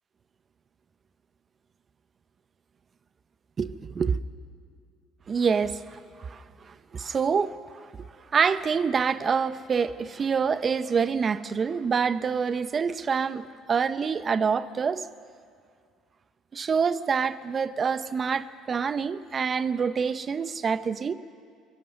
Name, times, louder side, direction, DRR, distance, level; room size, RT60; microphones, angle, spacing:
voice 1, 3.6-4.2 5.3-7.6 8.3-15.1 16.5-21.1, right 6 dB, 40° right, 14 dB, 0.8 m, -26 dB
24.5 x 17.0 x 6.5 m, 2.2 s
supercardioid pair, 85°, 0 cm